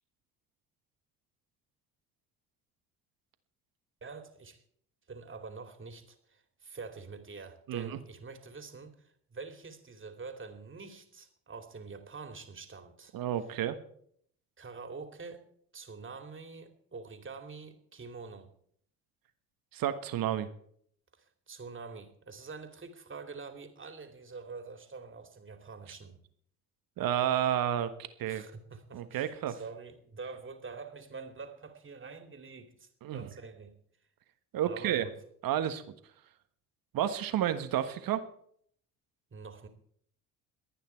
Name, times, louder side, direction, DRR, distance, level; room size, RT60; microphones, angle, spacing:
voice 1, 4.0-4.6 5.1-13.1 14.6-15.4 15.7-18.5 21.1-26.2 28.3-32.9 33.1-33.8 34.6-35.1 39.3-39.7, right 4 dB, 30° right, 7 dB, 2.6 m, -46 dB
voice 2, 7.7-8.0 13.1-13.8 19.7-20.5 27.0-27.9 28.2-28.4 28.9-29.6 33.0-33.3 34.5-35.0 35.4-35.8 36.9-38.2, right 11 dB, 55° right, 10 dB, 1.4 m, -30 dB
22.5 x 9.1 x 4.5 m, 0.65 s
hypercardioid pair, 55°, 42 cm